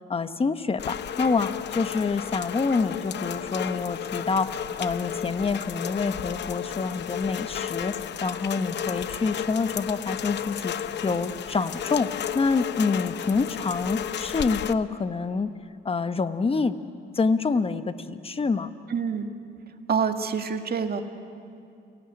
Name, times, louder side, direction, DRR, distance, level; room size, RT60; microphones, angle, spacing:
voice 1, 0.1-8.0 8.2-10.7 11.0-15.5 15.8-16.7 17.1-18.7, left 4 dB, 30° left, 10 dB, 1.2 m, -27 dB
Rain, 0.8-14.7, left 9 dB, 60° left, 0.8 m, -33 dB
voice 2, 18.9-19.3 19.9-21.0, right 6 dB, 50° right, 6 dB, 2.1 m, -26 dB
30.0 x 17.5 x 9.9 m, 2.4 s
cardioid pair, 90°, 20 cm